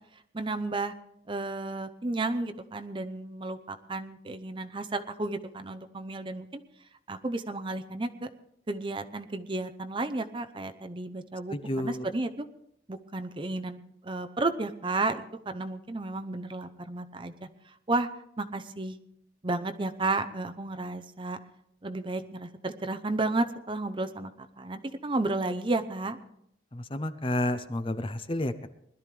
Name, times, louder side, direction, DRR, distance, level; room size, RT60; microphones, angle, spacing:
voice 1, 0.3-0.9 1.3-6.6 7.1-8.3 8.7-11.6 11.8-12.5 12.9-13.8 14.0-17.5 17.9-18.1 18.4-19.0 19.4-21.4 21.8-26.2, right 2 dB, 25° right, 8 dB, 0.7 m, -32 dB
voice 2, 11.5-12.1 26.7-28.7, left 1 dB, 30° left, 10 dB, 0.7 m, -31 dB
21.0 x 12.5 x 3.4 m, 0.74 s
head